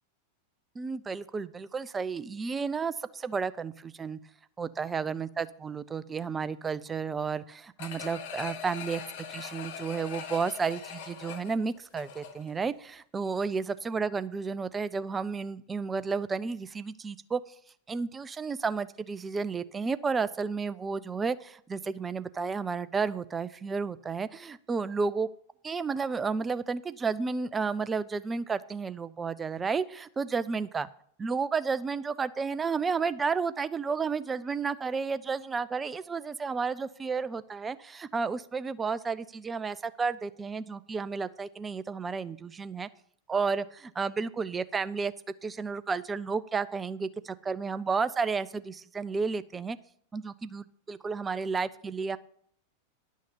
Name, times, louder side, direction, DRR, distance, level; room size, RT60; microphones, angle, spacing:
voice 1, 0.8-4.2 4.6-9.0 9.3-17.4 17.9-25.3 25.6-30.9 31.2-42.9 43.3-45.1 45.4-49.8 50.1-52.2, right 5 dB, 15° right, 15 dB, 0.5 m, -32 dB
sound 1, 7.8-12.6 13.0-13.1, left 7 dB, 50° left, 1.4 m, -41 dB
11.0 x 6.4 x 6.9 m, 0.63 s
figure-of-eight pair, 90°, 0 cm